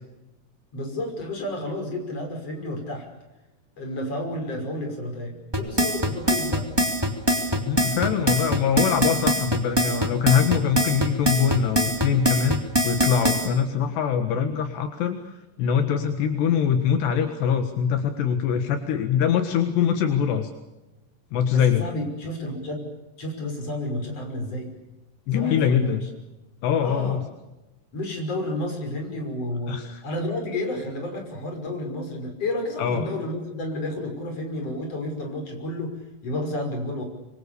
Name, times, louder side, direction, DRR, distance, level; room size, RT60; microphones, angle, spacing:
voice 1, 0.7-3.1 3.8-6.7 21.5-22.9 23.2-24.7 25.3-26.0 26.8-27.2 27.9-29.8 30.0-35.9 36.2-37.0, left 1 dB, 35° left, 3 dB, 6.6 m, -31 dB
sound 1, 5.5-13.5, equal, 5° right, 2.5 m, -22 dB
voice 2, 7.7-12.6 12.8-15.2 15.6-20.5 21.3-21.8 25.3-26.0 26.6-27.3 29.7-30.0 32.8-33.1, left 8 dB, 80° left, 7 dB, 3.8 m, -23 dB
26.0 x 25.5 x 7.0 m, 1.0 s
omnidirectional pair, 4.9 m